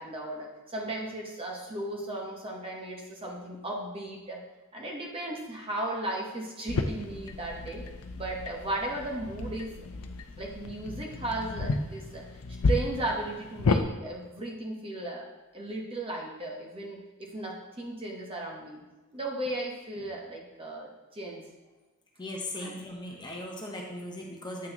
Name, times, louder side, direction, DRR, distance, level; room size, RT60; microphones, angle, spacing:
voice 1, 0.0-4.4 4.7-7.8 8.1-10.0 10.4-15.3 15.5-18.8 19.1-21.4 22.6-22.8, right 2 dB, 25° right, -1 dB, 1.1 m, -36 dB
sound 1, 6.7-13.8, left 3 dB, 85° left, 0.6 m, -32 dB
voice 2, 22.2-24.7, left 1 dB, 20° left, -1 dB, 0.9 m, -38 dB
8.5 x 6.1 x 3.0 m, 1.2 s
head